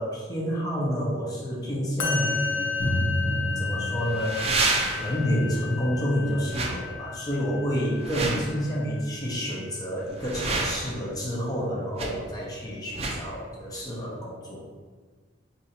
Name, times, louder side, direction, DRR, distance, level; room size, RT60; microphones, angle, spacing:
voice 1, 0.0-2.7 3.2-4.5 4.9-14.7, equal, 20° left, -5 dB, 0.8 m, -29 dB
Musical instrument, 2.0-9.3, left 5 dB, 80° left, 0.5 m, -33 dB
sound 1, 2.1-2.2 4.1-5.2 6.5-6.7 7.9-8.5 10.0-11.0 12.0-12.1 12.9-13.2, right 3 dB, 35° right, 0.5 m, -28 dB
Drum, 2.8-5.2, equal, 65° left, 0.8 m, -30 dB
2.7 x 2.6 x 4.0 m, 1.5 s
head